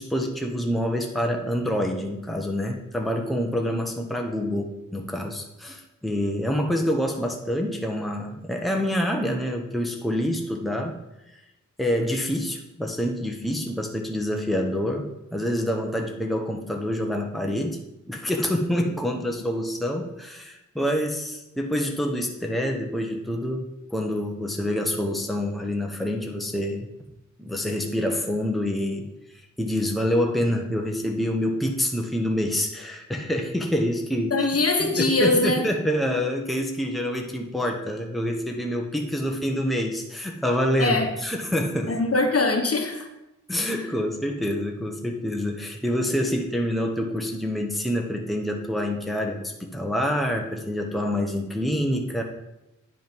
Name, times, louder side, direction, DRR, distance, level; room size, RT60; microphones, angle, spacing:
voice 1, 0.0-11.0 11.3-11.4 11.8-17.8 18.1-23.6 23.9-26.9 27.4-29.1 29.6-34.5 34.8-41.0 41.2-41.9 43.5-52.2, equal, ahead, 2 dB, 1.1 m, -27 dB
voice 2, 34.3-35.7 40.8-41.1 41.9-43.1, left 2 dB, 45° left, 4 dB, 1.4 m, -22 dB
9.5 x 5.2 x 5.3 m, 0.92 s
cardioid pair, 60°, 34 cm